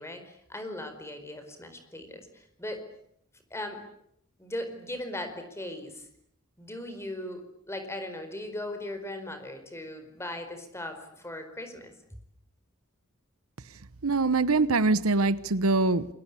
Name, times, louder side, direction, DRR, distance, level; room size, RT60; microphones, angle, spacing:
voice 1, 0.0-2.8 3.5-3.8 4.4-6.1 6.6-11.9, left 1 dB, 15° left, 7 dB, 4.7 m, -38 dB
voice 2, 14.0-16.1, right 3 dB, 80° right, 16 dB, 1.1 m, -23 dB
28.5 x 22.5 x 8.5 m, 0.73 s
head